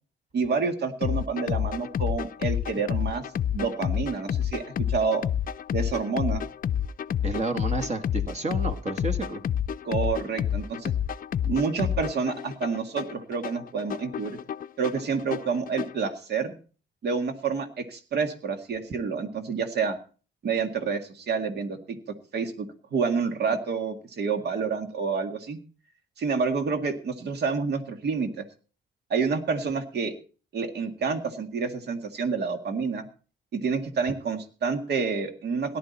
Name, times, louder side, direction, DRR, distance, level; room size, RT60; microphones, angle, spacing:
voice 1, 0.3-3.2 3.5-5.2 5.7-6.4 9.8-10.9 11.4-14.4 14.8-16.5 17.0-20.0 20.4-22.0 22.3-25.6 26.2-28.4 29.1-30.1 30.5-33.1 33.5-35.8, right 5 dB, 65° right, 6 dB, 2.0 m, -28 dB
sound 1, 1.0-16.0, left 9 dB, 50° left, 0.5 m, -29 dB
voice 2, 7.2-9.4, right 2 dB, 40° right, 4 dB, 1.7 m, -30 dB
17.5 x 11.0 x 4.2 m, 0.38 s
cardioid pair, 105°, 18 cm